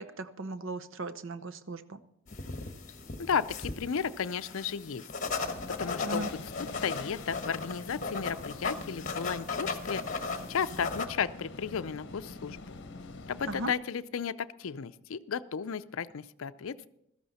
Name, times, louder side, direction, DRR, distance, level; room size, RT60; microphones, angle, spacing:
voice 1, 0.0-2.0 6.0-6.3 13.5-13.7, right 2 dB, 65° right, 11 dB, 0.7 m, -37 dB
sound 1, 2.3-11.1, left 4 dB, 35° left, 1.2 m, -37 dB
voice 2, 3.2-5.1 5.7-6.3 6.6-10.2 10.5-12.8 13.3-16.9, left 6 dB, 70° left, 13 dB, 0.5 m, -34 dB
sound 2, 5.4-13.7, left 3 dB, 55° left, 0.9 m, -45 dB
16.0 x 13.0 x 4.1 m, 0.78 s
head